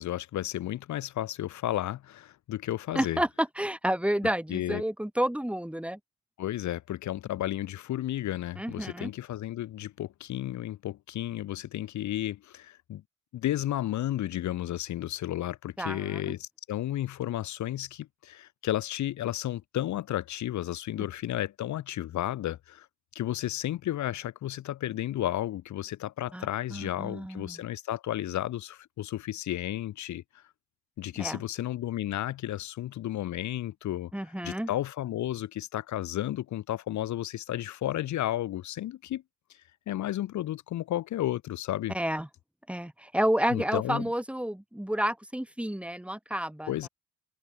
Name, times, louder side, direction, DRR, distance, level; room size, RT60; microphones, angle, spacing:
voice 1, 0.0-3.2 4.5-4.8 6.4-13.0 13.3-22.9 23.1-30.4 31.0-34.1 34.4-39.2 39.5-39.6 39.9-41.9 43.5-44.1 46.7-46.9, left 13 dB, 70° left, 1.1 m, -33 dB
voice 2, 2.9-6.0 8.6-9.1 15.8-16.3 26.3-27.6 31.2-31.4 34.1-34.7 41.9-42.3 42.7-46.7, right 1 dB, 5° right, 3.7 m, -30 dB
cardioid pair, 90°, 30 cm